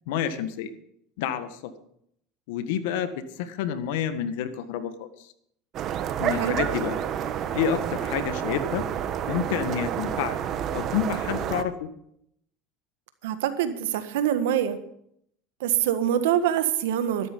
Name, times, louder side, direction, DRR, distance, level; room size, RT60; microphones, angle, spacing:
voice 1, 0.1-0.7 1.2-1.7 2.5-3.1 3.4-5.1 6.2-7.0 7.5-8.8 9.3-10.4 10.7-11.9, left 9 dB, 75° left, 11 dB, 1.5 m, -29 dB
sound 1, 5.7-11.6, right 9 dB, 50° right, 1.3 m, -29 dB
voice 2, 13.2-14.8 15.6-17.3, right 10 dB, 80° right, 10 dB, 1.5 m, -25 dB
13.5 x 12.5 x 5.4 m, 0.71 s
supercardioid pair, 100°, 0 cm